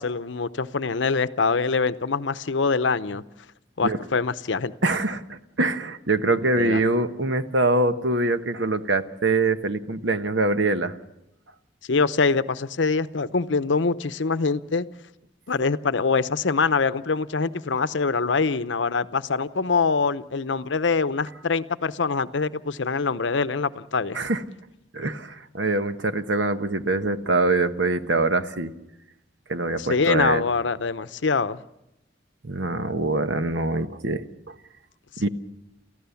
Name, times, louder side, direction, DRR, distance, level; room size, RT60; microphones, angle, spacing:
voice 1, 0.0-3.2 3.8-4.7 6.6-6.8 11.9-14.9 15.5-24.2 29.8-31.6, left 4 dB, 75° left, 14 dB, 0.7 m, -24 dB
voice 2, 4.8-10.9 24.1-24.4 24.9-28.7 29.5-30.4 32.4-34.5 35.2-35.3, right 2 dB, 70° right, 9 dB, 1.2 m, -24 dB
29.0 x 15.0 x 7.0 m, 0.90 s
head